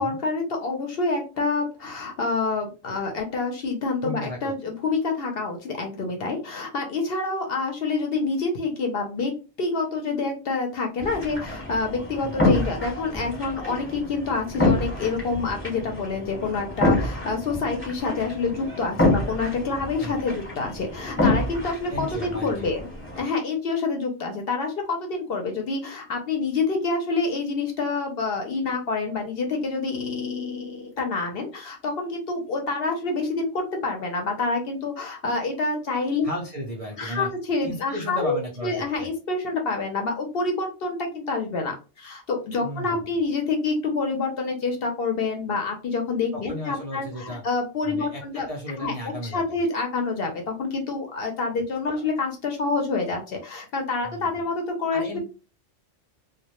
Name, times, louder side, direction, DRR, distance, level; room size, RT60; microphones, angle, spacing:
voice 1, 0.0-9.3 9.6-22.8 23.2-36.2 37.0-48.5 48.8-48.9 49.2-55.2, left 3 dB, 60° left, 3 dB, 0.7 m, -27 dB
voice 2, 4.0-4.5 12.2-12.3 20.0-20.2 21.9-22.8 36.2-37.3 37.6-39.1 42.6-43.0 46.3-47.4 47.8-49.4 51.9-52.0 54.0-54.3 54.9-55.2, equal, 60° right, -1 dB, 0.3 m, -34 dB
sound 1, 11.0-23.2, left 2 dB, 10° left, 0.9 m, -27 dB
2.1 x 2.0 x 2.9 m, 0.32 s
omnidirectional pair, 1.3 m